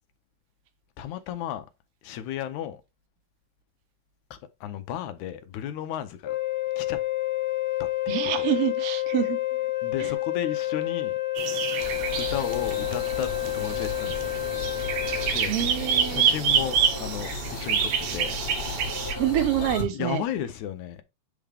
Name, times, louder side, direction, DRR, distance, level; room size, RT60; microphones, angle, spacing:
voice 1, 1.0-1.7 2.0-2.8 4.3-6.4 6.8-7.0 7.8-7.9 8.4-8.5 9.8-11.2 12.2-14.4 15.3-15.5 16.0-18.4 19.9-21.0, left 10 dB, 90° left, 2.2 m, -34 dB
Wind instrument woodwind instrument, 6.2-15.4, left 16 dB, 70° left, 1.5 m, -29 dB
voice 2, 8.1-9.4 10.0-10.1 15.5-16.3 19.1-20.2, right 11 dB, 65° right, 1.7 m, -26 dB
sound 1, 11.4-19.1, right 7 dB, 80° right, 2.4 m, -28 dB
sound 2, 11.8-19.8, left 3 dB, 35° left, 2.2 m, -36 dB
8.3 x 3.6 x 3.4 m
omnidirectional pair, 3.3 m